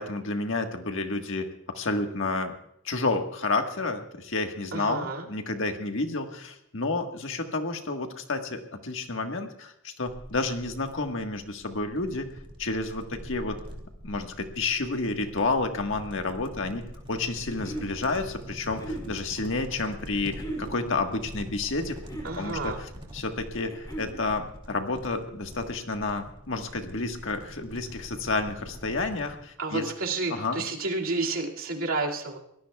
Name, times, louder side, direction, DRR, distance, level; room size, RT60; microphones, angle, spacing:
voice 1, 0.0-1.5 1.7-2.5 2.8-12.3 12.6-13.6 14.0-16.8 17.1-29.8 30.3-30.6, left 3 dB, 65° left, 4 dB, 1.6 m, -30 dB
voice 2, 4.7-5.3 22.2-22.8 29.6-32.4, right 3 dB, 85° right, -1 dB, 2.4 m, -30 dB
sound 1, 10.1-29.4, equal, 25° right, 2.6 m, -44 dB
sound 2, 17.2-17.9 18.6-19.1 20.3-20.7 21.8-22.4 23.5-24.2, right 1 dB, 20° left, 4.4 m, -38 dB
24.0 x 17.5 x 2.4 m, 0.76 s
head